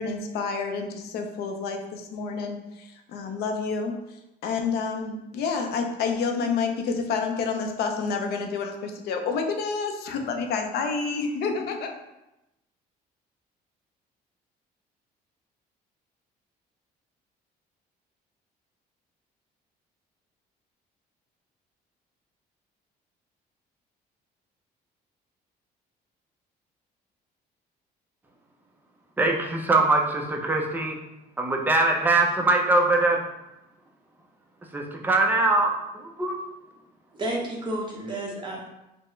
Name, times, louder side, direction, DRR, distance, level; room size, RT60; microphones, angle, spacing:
voice 1, 0.0-12.0, left 5 dB, 70° left, 5 dB, 0.5 m, -29 dB
voice 2, 29.2-31.0 31.4-33.2 34.7-36.4, right 2 dB, 10° right, 1 dB, 0.5 m, -22 dB
voice 3, 37.1-38.7, right 1 dB, 25° right, -3 dB, 1.0 m, -31 dB
4.2 x 2.1 x 3.1 m, 0.93 s
cardioid pair, 110°, 17 cm